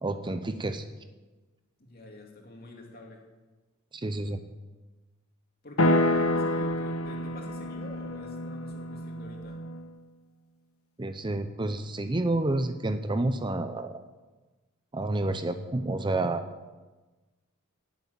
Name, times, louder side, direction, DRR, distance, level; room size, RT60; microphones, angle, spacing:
voice 1, 0.0-0.8 3.9-4.4 11.0-14.0 14.9-16.4, right 2 dB, 20° right, 9 dB, 0.6 m, -29 dB
voice 2, 1.8-3.2 5.6-9.6, left 2 dB, 45° left, 0 dB, 2.9 m, -46 dB
sound 1, 5.8-9.9, left 1 dB, 75° left, 1.1 m, -28 dB
11.5 x 8.4 x 9.6 m, 1.2 s
head